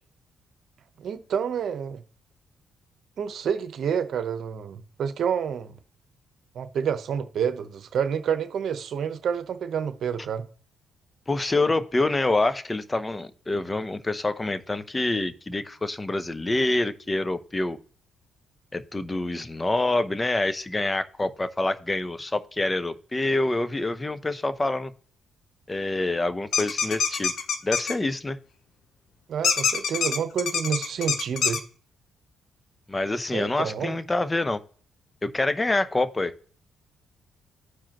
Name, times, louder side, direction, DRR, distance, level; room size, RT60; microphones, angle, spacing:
voice 1, 1.0-2.0 3.2-5.8 6.5-10.5 29.3-31.6 33.3-33.9, right 7 dB, 65° right, 0.9 m, -28 dB
voice 2, 11.3-17.8 18.7-24.9 25.7-27.3 27.6-28.4 32.9-34.6 35.2-36.4, left 2 dB, 20° left, 0.7 m, -26 dB
sound 1, 26.5-27.9 29.4-31.6, left 6 dB, 65° left, 0.9 m, -25 dB
13.0 x 4.8 x 3.0 m
cardioid pair, 90°, 0 cm